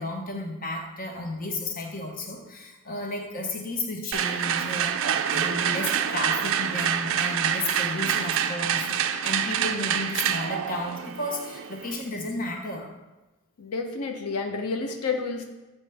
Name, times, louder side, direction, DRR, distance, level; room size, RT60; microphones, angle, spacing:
voice 1, 0.0-12.9, left 2 dB, 40° left, 3 dB, 0.8 m, -33 dB
sound 1, 4.1-12.1, right 9 dB, 60° right, 0.4 m, -27 dB
voice 2, 13.6-15.4, left 4 dB, 90° left, 4 dB, 0.6 m, -30 dB
7.7 x 4.3 x 3.3 m, 1.1 s
head